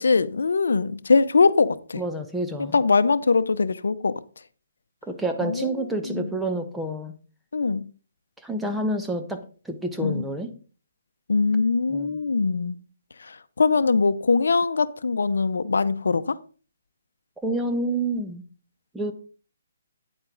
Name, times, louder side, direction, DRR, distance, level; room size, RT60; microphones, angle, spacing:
voice 1, 0.0-2.0 2.7-4.1 5.4-6.3 7.5-7.8 10.0-10.2 11.3-12.8 13.2-16.4, left 4 dB, 85° left, 0.6 m, -22 dB
voice 2, 2.0-2.7 5.1-7.1 8.4-10.5 11.9-12.2 17.4-18.4 18.9-19.1, right 1 dB, 5° right, 1.0 m, -28 dB
9.6 x 8.0 x 3.9 m
hypercardioid pair, 155°, 0 cm